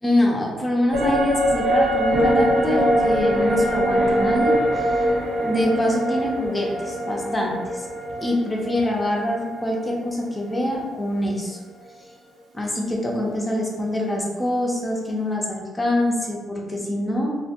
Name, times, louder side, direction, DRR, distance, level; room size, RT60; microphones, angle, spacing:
voice 1, 0.0-5.0 5.4-7.9 8.2-11.6 12.5-17.4, left 1 dB, 20° left, -1 dB, 0.6 m, -25 dB
sound 1, 0.9-10.4 10.7-10.8, equal, 85° right, 1.0 m, -23 dB
2.7 x 2.1 x 2.8 m, 1.4 s
cardioid pair, 90°, 0 cm